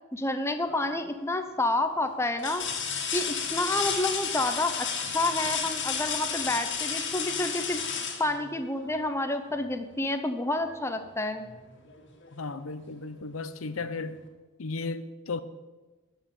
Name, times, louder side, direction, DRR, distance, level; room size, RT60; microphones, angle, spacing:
voice 1, 0.1-2.6 3.1-4.7 5.1-7.8 8.2-11.5, left 2 dB, 15° left, 7 dB, 0.7 m, -29 dB
sound 1, 0.6-1.1 1.7-1.8 2.4-9.1 10.9-11.0 11.5-12.5 13.8-13.9, left 6 dB, 60° left, 1.9 m, -32 dB
voice 2, 12.3-14.2 14.6-15.4, left 3 dB, 80° left, 12 dB, 0.7 m, -35 dB
13.5 x 5.6 x 8.4 m, 1.2 s
head